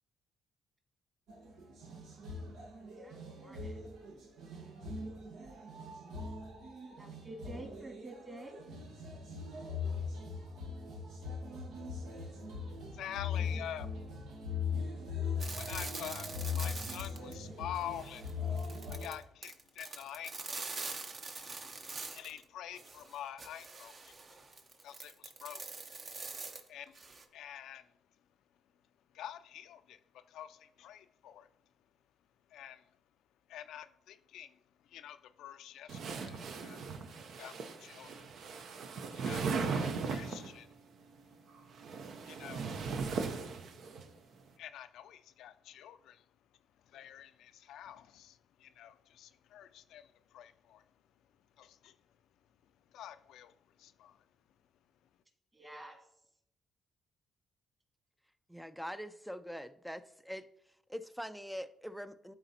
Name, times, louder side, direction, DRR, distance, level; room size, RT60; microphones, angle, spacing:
sound 1, 1.3-19.1, left 5 dB, 90° right, 1.1 m, -40 dB
voice 1, 3.0-3.8 6.9-8.7 55.5-56.0, right 2 dB, 25° right, 2.0 m, -49 dB
voice 2, 12.9-14.0 15.5-18.3 18.9-20.7 21.3-21.4 22.1-24.1 24.8-25.6 26.7-27.0 27.3-27.9 29.1-31.5 32.5-32.9 33.5-34.6 34.8-36.9 37.4-38.3 39.1-40.7 42.2-42.7 44.6-46.2 46.9-50.8 51.6-51.9 52.9-54.2, left 11 dB, 80° left, 0.4 m, -47 dB
sound 2, 15.4-17.5 17.7-22.4 22.7-27.2, right 3 dB, 45° right, 0.8 m, -44 dB
sound 3, 35.9-40.6 41.6-44.0, right 5 dB, 70° right, 0.7 m, -38 dB
voice 3, 58.5-60.5 60.9-62.3, equal, ahead, 0.3 m, -43 dB
12.0 x 4.0 x 2.8 m
cardioid pair, 90°, 0 cm